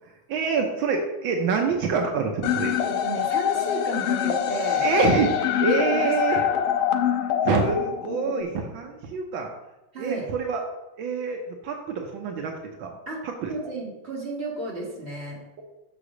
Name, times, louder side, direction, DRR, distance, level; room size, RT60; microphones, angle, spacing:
voice 1, 0.3-2.8 4.8-6.4 7.4-9.5 10.0-10.6 11.0-12.5 12.8-13.0 13.2-13.5, right 5 dB, 80° right, 2 dB, 1.6 m, -26 dB
sound 1, 2.4-8.4, left 9 dB, 85° left, 1.6 m, -25 dB
voice 2, 2.8-4.9 5.7-6.4 9.9-10.3 13.1-13.2 13.5-15.4, right 2 dB, 30° right, -4 dB, 2.4 m, -33 dB
6.8 x 4.9 x 6.2 m, 0.98 s
omnidirectional pair, 2.2 m